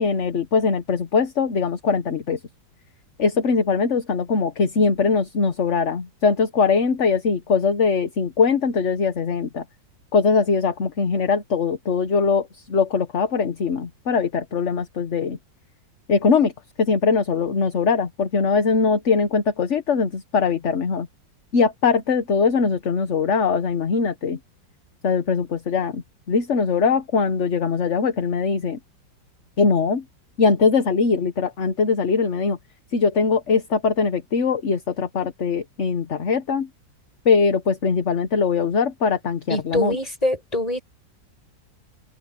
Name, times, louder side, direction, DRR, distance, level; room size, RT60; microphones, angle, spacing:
voice 1, 0.0-2.4 3.2-9.6 10.1-15.4 16.1-16.5 16.8-21.1 21.5-24.4 25.0-26.0 26.3-28.8 29.6-30.0 30.4-32.6 32.9-36.7 37.2-40.0, left 5 dB, 45° left, 1.4 m, -21 dB
voice 2, 39.5-40.8, left 1 dB, 20° left, 6.5 m, -24 dB
omnidirectional pair, 2.0 m